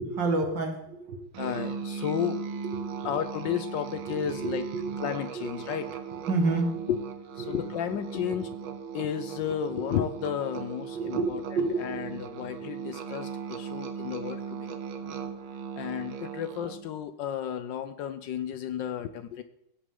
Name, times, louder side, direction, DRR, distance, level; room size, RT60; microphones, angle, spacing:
voice 1, 0.0-1.2 2.9-3.1 4.1-4.9 5.3-5.4 6.1-6.8 7.4-7.6 10.9-12.2 15.0-15.5, right 3 dB, 60° right, 4 dB, 2.3 m, -30 dB
Musical instrument, 1.3-16.9, right 6 dB, 80° right, 1.8 m, -38 dB
voice 2, 1.4-2.4 3.0-4.6 5.0-6.0 6.9-7.0 7.3-8.6 8.9-11.4 11.8-14.8 15.8-19.4, left 9 dB, 70° left, 11 dB, 1.2 m, -33 dB
16.0 x 8.1 x 3.8 m, 0.83 s
omnidirectional pair, 2.3 m